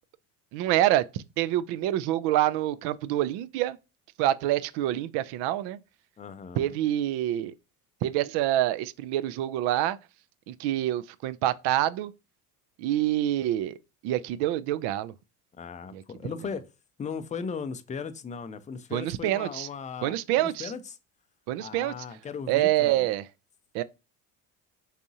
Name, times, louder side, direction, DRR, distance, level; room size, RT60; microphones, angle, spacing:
voice 1, 0.5-3.8 4.2-5.8 6.6-7.5 8.0-10.0 10.5-12.1 12.8-13.8 14.0-15.1 15.9-16.0 18.9-19.7 20.0-20.7 21.5-21.9 22.5-23.2 23.7-23.8, right 13 dB, 60° right, 0.5 m, -26 dB
voice 2, 6.2-6.7 15.6-16.6 17.0-21.0 21.6-23.1, left 6 dB, 15° left, 0.5 m, -37 dB
4.1 x 3.5 x 2.7 m
hypercardioid pair, 75°, 44 cm